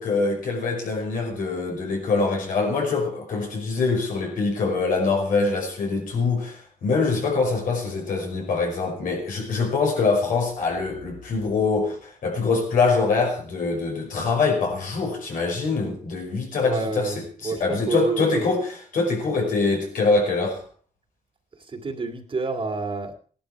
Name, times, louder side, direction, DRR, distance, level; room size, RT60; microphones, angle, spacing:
voice 1, 0.0-17.1 17.4-18.7 18.9-20.6, left 4 dB, 85° left, 5.4 m, -24 dB
voice 2, 16.6-18.5 21.5-23.1, right 3 dB, 40° right, 2.3 m, -29 dB
16.5 x 11.5 x 4.7 m
cardioid pair, 90°, 14 cm